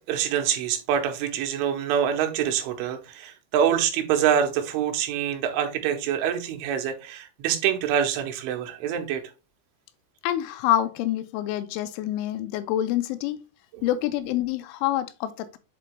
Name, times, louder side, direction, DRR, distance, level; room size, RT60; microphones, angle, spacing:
voice 1, 0.1-9.2 13.7-13.8, right 9 dB, 85° right, 3.3 m, -25 dB
voice 2, 10.2-13.4 13.8-15.6, left 12 dB, 85° left, 3.0 m, -26 dB
7.8 x 3.8 x 3.2 m
omnidirectional pair, 5.5 m